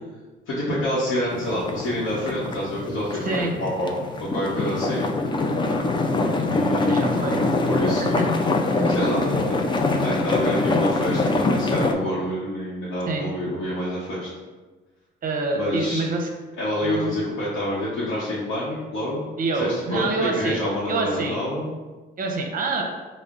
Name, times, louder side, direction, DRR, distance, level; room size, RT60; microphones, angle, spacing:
voice 1, 0.5-3.9 4.2-5.2 6.5-7.1 7.6-8.6 8.9-9.6 10.0-14.3 15.5-16.0 16.6-19.2 19.6-21.7, left 1 dB, 80° left, -8 dB, 0.8 m, -27 dB
sound 1, 1.3-11.9, left 2 dB, 25° left, 0.4 m, -24 dB
voice 2, 6.8-7.4 8.2-8.3 8.8-8.9 13.1-13.3 15.2-16.3 16.8-17.1 19.4-20.6 20.9-21.4 22.2-22.8, right 3 dB, 45° right, 2 dB, 0.7 m, -26 dB
5.1 x 2.1 x 2.4 m, 1.3 s
cardioid pair, 90°, 20 cm